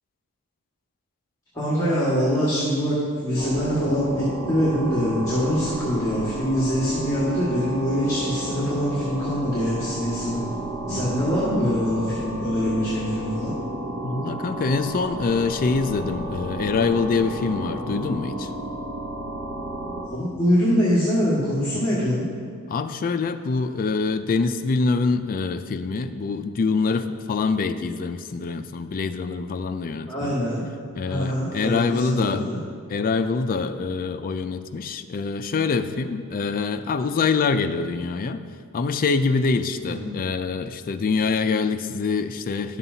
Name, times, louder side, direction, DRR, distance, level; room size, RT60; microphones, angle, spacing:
voice 1, 1.5-10.5 10.9-13.5 20.1-22.3 30.1-30.7 31.0-32.6 39.8-40.1, equal, 15° left, -10 dB, 1.7 m, -24 dB
sound 1, 3.4-20.1, right 1 dB, 60° right, 0.8 m, -32 dB
voice 2, 14.0-18.5 22.7-30.4 31.0-32.5 32.9-38.4 38.7-42.8, left 4 dB, 40° left, 10 dB, 0.3 m, -25 dB
11.5 x 7.2 x 2.7 m, 2.1 s
head